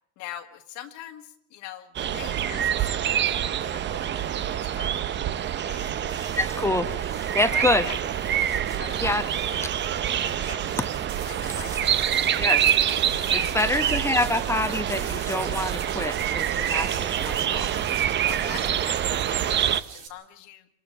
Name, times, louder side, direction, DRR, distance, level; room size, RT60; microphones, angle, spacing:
voice 1, 0.2-6.1 7.4-8.4 8.8-9.9 10.4-10.7 11.2-12.4 13.2-14.1 14.6-15.4 16.8-17.1 18.2-20.7, left 12 dB, 60° left, 5 dB, 1.8 m, -43 dB
sound 1, 2.0-19.8, right 10 dB, 35° right, 0.8 m, -26 dB
sound 2, 5.7-15.8, right 2 dB, 10° right, 2.5 m, -46 dB
voice 2, 6.4-7.8 9.0-9.2 12.4-12.6 13.3-17.7, left 1 dB, 10° left, 9 dB, 1.1 m, -26 dB
sound 3, 11.1-20.1, right 7 dB, 85° right, 2.3 m, -42 dB
27.0 x 19.0 x 5.3 m, 0.77 s
hypercardioid pair, 85°, 33 cm